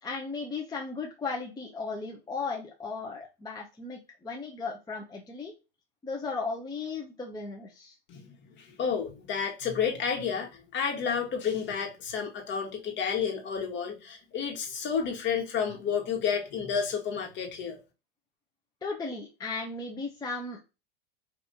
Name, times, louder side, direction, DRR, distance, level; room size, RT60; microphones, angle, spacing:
voice 1, 0.0-5.5 6.0-8.0 18.8-20.6, left 4 dB, 15° left, 0.7 m, -36 dB
voice 2, 8.1-17.8, left 6 dB, 35° left, 1.5 m, -31 dB
5.0 x 2.8 x 2.7 m
supercardioid pair, 115°, 31 cm